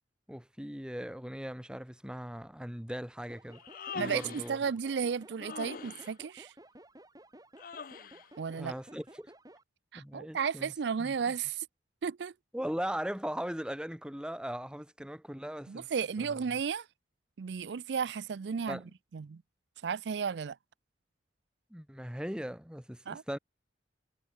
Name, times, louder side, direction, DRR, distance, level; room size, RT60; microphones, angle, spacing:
voice 1, 0.3-3.6 4.0-4.6 8.6-9.3 9.9-10.7 11.0-11.1 12.5-15.9 16.2-16.4 18.7-18.8 21.7-23.4, equal, 5° right, 1.4 m, -39 dB
sound 1, 3.3-9.6, right 1 dB, 20° right, 7.7 m, -55 dB
Human voice, 3.5-4.6 5.4-6.1 7.6-8.3, left 5 dB, 50° left, 0.7 m, -42 dB
voice 2, 3.9-6.5 8.4-8.7 9.9-11.7 12.0-12.3 15.7-16.9 17.4-18.8 19.1-19.4 19.8-20.6 23.1-23.2, right 6 dB, 70° right, 0.4 m, -34 dB
head